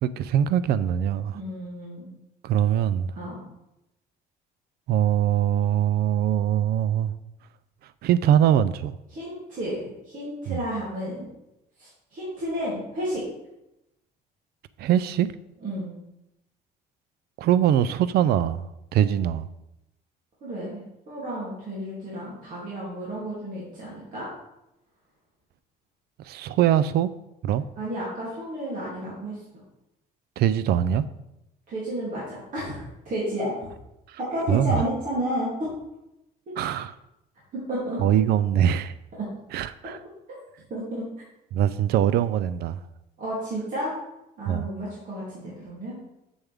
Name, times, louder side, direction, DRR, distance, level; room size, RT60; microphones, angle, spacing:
voice 1, 0.0-1.4 2.4-3.1 4.9-7.1 8.0-8.9 10.5-10.6 14.8-15.3 17.4-18.7 18.9-19.5 26.2-27.1 27.4-27.6 30.4-31.1 34.1-34.2 34.5-34.8 36.6-36.9 38.0-38.9 39.5-40.0 41.5-42.8 44.5-44.7, right 10 dB, 70° right, 15 dB, 0.4 m, -22 dB
voice 2, 1.3-2.1 3.1-3.4 9.1-11.2 11.8-13.2 15.6-16.0 20.4-24.3 27.8-29.4 31.7-33.5 34.2-35.5 37.5-38.0 39.1-39.2 40.7-41.0 43.2-43.9 44.4-46.0, equal, 50° right, -8 dB, 2.9 m, -32 dB
7.1 x 7.0 x 3.6 m, 0.88 s
cardioid pair, 110°, 17 cm